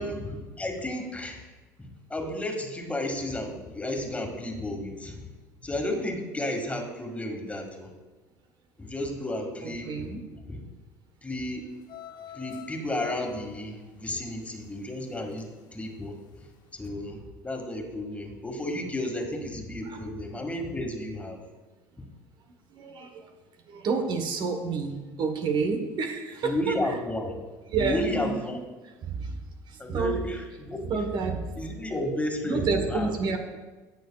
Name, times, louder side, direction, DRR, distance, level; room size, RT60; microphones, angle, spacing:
voice 1, 0.0-1.5 2.1-5.3 5.6-7.9 8.8-10.6 11.2-11.6 12.3-16.2 16.7-17.2 17.4-21.4 26.4-27.4 27.8-28.6 29.8-31.0 31.6-33.1, left 1 dB, 15° left, 2 dB, 1.9 m, -32 dB
voice 2, 9.6-10.2 19.9-20.0 22.7-23.3 23.7-26.8 27.7-28.6 29.0-29.4 29.9-30.2 30.9-31.4 32.4-33.4, right 4 dB, 50° right, 5 dB, 1.1 m, -29 dB
sound 1, 11.8-15.6 16.0-16.5 16.8-16.9, left 9 dB, 50° left, 0.9 m, -46 dB
17.5 x 6.5 x 2.3 m, 1.3 s
hypercardioid pair, 70°, 10 cm